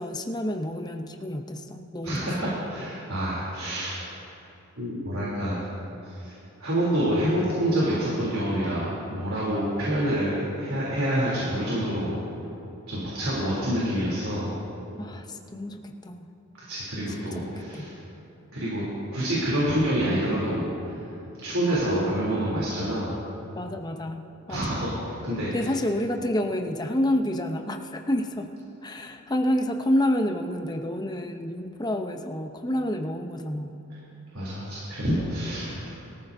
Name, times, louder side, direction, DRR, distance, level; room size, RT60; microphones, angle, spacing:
voice 1, 0.0-2.5 15.0-16.3 17.2-17.9 23.5-24.8 25.5-28.5 28.8-33.8, left 1 dB, 20° left, 4 dB, 0.7 m, -29 dB
voice 2, 2.0-4.0 4.8-5.6 6.0-6.3 6.6-12.2 12.9-14.5 16.7-17.9 18.5-18.9 19.1-20.7 21.4-23.2 24.5-25.7 34.3-35.9, equal, 80° right, -7 dB, 3.2 m, -27 dB
22.5 x 14.0 x 2.7 m, 2.8 s
head